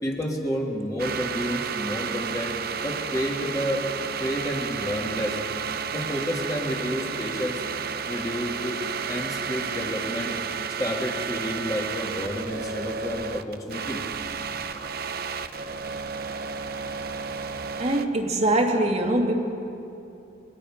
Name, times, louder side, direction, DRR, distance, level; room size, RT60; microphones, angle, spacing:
voice 1, 0.0-3.9 4.2-5.4 5.9-7.6 8.1-10.3 10.8-14.1, equal, 20° left, -2 dB, 2.4 m, -30 dB
sound 1, 1.0-18.1, right 6 dB, 55° right, 0.9 m, -32 dB
voice 2, 17.8-19.3, right 1 dB, 35° right, 3 dB, 2.2 m, -23 dB
28.5 x 24.0 x 5.1 m, 2.8 s
head